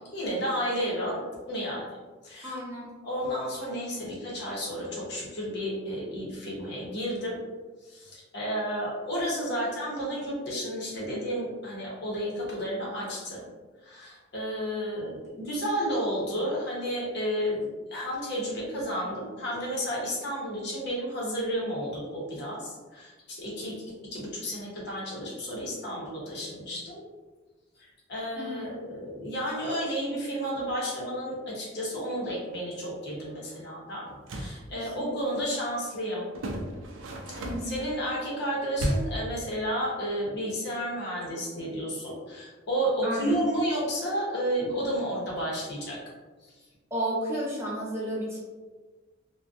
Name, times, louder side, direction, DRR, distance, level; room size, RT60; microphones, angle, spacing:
voice 1, 0.1-1.9 2.2-2.6 3.0-7.4 7.8-13.5 13.8-15.2 15.4-23.7 24.1-27.0 27.8-36.3 37.3-46.0 46.4-46.5, equal, 60° left, -4 dB, 0.7 m, -32 dB
voice 2, 2.4-2.9 28.4-28.7 34.7-35.4 37.4-37.7 43.0-43.4 46.9-48.4, right 1 dB, 15° right, -6 dB, 0.6 m, -33 dB
sound 1, 34.1-34.6 36.3-37.8 38.8-39.3, right 1 dB, 75° right, 0.4 m, -32 dB
2.4 x 2.1 x 2.3 m, 1.3 s
head